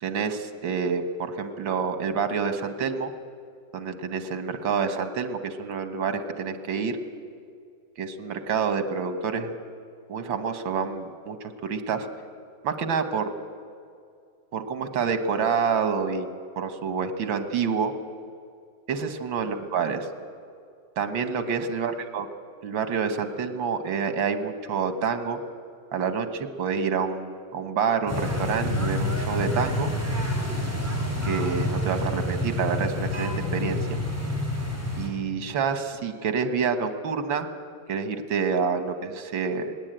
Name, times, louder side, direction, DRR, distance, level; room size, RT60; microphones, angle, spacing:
voice 1, 0.0-3.1 3.7-7.0 8.0-9.6 10.1-12.1 12.6-13.3 14.5-16.3 16.6-17.9 18.9-20.1 21.0-22.3 22.6-25.4 25.9-29.9 31.2-33.9 35.0-37.5 37.9-39.8, right 6 dB, 80° right, 9 dB, 2.1 m, -28 dB
sound 1, 28.1-35.1, left 1 dB, 5° right, 3.9 m, -28 dB
19.5 x 18.0 x 9.0 m, 2.3 s
omnidirectional pair, 2.1 m